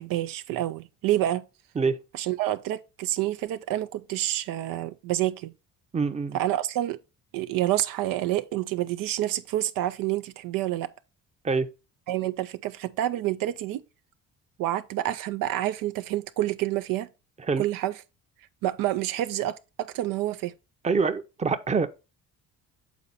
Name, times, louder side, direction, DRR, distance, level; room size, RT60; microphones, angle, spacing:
voice 1, 0.0-1.4 2.1-5.5 6.3-7.0 7.3-10.9 12.1-13.8 14.6-17.1 17.6-18.0 18.6-20.5, right 14 dB, 75° right, 0.5 m, -28 dB
voice 2, 5.9-6.4 11.4-11.7 17.4-17.6 20.8-21.9, right 4 dB, 20° right, 0.7 m, -25 dB
7.1 x 4.1 x 3.9 m
supercardioid pair, 80°, 34 cm